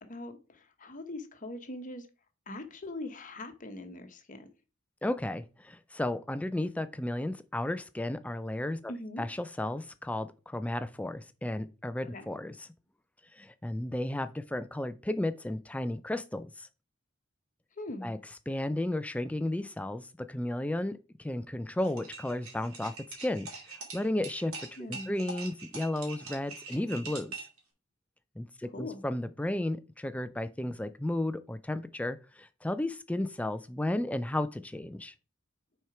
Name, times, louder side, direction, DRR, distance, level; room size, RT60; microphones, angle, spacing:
voice 1, 0.1-2.1 2.5-4.5 8.9-9.2 12.0-12.3 17.8-18.2 24.8-25.3 28.7-29.0, left 2 dB, 40° left, 1.0 m, -41 dB
voice 2, 5.0-8.9 9.2-12.7 13.3-16.7 18.0-18.2 18.5-22.9 23.2-24.5 24.9-27.5 28.4-35.1, left 1 dB, 5° left, 0.3 m, -33 dB
sound 1, 21.8-27.6, right 4 dB, 85° right, 2.3 m, -43 dB
6.2 x 4.4 x 4.8 m
head